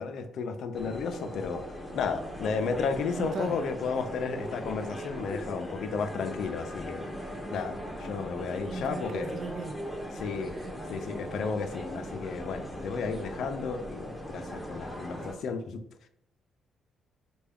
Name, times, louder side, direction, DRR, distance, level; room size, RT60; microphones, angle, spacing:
voice 1, 0.0-1.6 1.9-7.1 7.5-9.3 10.1-10.6 10.9-15.8, left 5 dB, 70° left, 0.4 m, -33 dB
sound 1, 0.7-15.3, equal, 10° left, 0.8 m, -39 dB
voice 2, 3.1-3.6 8.7-9.8 10.5-10.7, right 4 dB, 60° right, 0.4 m, -38 dB
3.3 x 2.2 x 3.4 m
cardioid pair, 90°, 0 cm